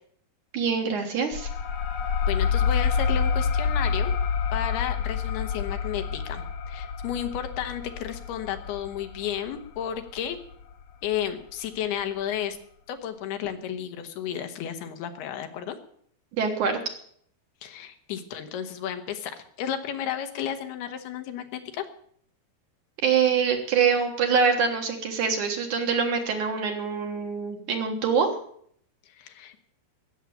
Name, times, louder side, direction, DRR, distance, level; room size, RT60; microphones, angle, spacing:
voice 1, 0.5-1.5 16.4-16.8 23.0-28.4, right 6 dB, 60° right, 3 dB, 2.6 m, -24 dB
sound 1, 1.3-10.5, left 6 dB, 60° left, 2.3 m, -28 dB
voice 2, 2.2-4.1 4.5-10.4 11.0-12.6 12.9-15.8 17.6-19.3 19.6-21.9 29.2-29.6, left 9 dB, 80° left, 7 dB, 3.2 m, -32 dB
16.5 x 7.3 x 8.5 m, 0.64 s
omnidirectional pair, 4.6 m